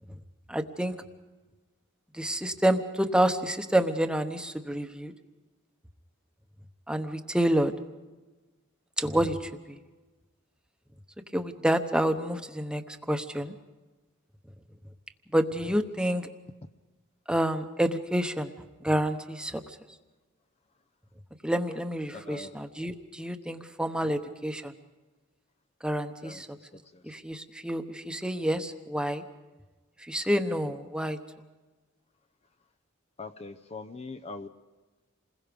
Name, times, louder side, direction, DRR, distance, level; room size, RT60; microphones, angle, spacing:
voice 1, 0.5-0.9 2.1-5.1 6.9-7.7 9.0-9.8 11.3-13.5 15.3-16.3 17.3-18.5 18.8-19.8 21.4-24.7 25.8-26.5 27.0-29.2 30.0-31.2, right 1 dB, 5° right, 7 dB, 1.0 m, -28 dB
voice 2, 22.1-22.6 24.0-24.1 26.2-26.4 26.9-27.0 33.2-34.5, left 3 dB, 30° left, 8 dB, 0.6 m, -42 dB
28.5 x 21.0 x 5.2 m, 1.2 s
head